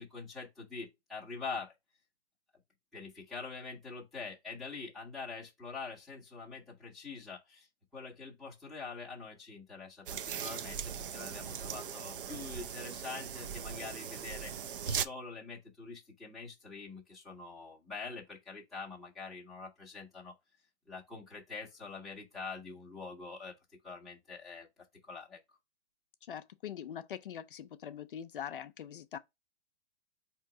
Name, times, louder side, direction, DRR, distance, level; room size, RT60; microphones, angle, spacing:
voice 1, 0.0-1.7 2.9-7.7 7.9-20.3 20.9-23.6 23.8-24.7 25.0-25.4, left 4 dB, ahead, 0.6 m, -45 dB
sound 1, 10.1-15.0, right 8 dB, 55° right, 0.4 m, -39 dB
voice 2, 26.3-29.2, left 9 dB, 50° left, 0.5 m, -43 dB
4.3 x 2.8 x 3.6 m
hypercardioid pair, 150°, 33 cm